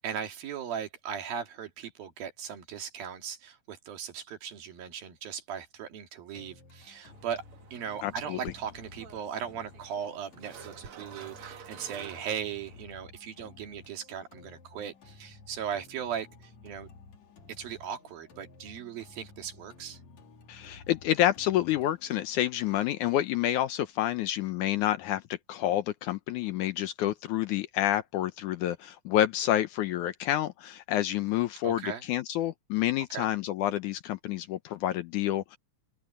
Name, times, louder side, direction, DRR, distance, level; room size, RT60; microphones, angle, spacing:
voice 1, 0.0-7.4 7.7-16.3 16.6-16.9 17.6-20.0 31.6-32.0 33.1-33.3, right 8 dB, 80° right, 4.1 m, -38 dB
sound 1, 6.3-24.3, left 3 dB, 50° left, 3.9 m, -54 dB
sound 2, 7.1-12.9, right 7 dB, 55° right, 1.6 m, -50 dB
voice 2, 8.0-8.5 20.5-35.6, left 12 dB, 75° left, 1.9 m, -29 dB
open air
omnidirectional pair, 4.1 m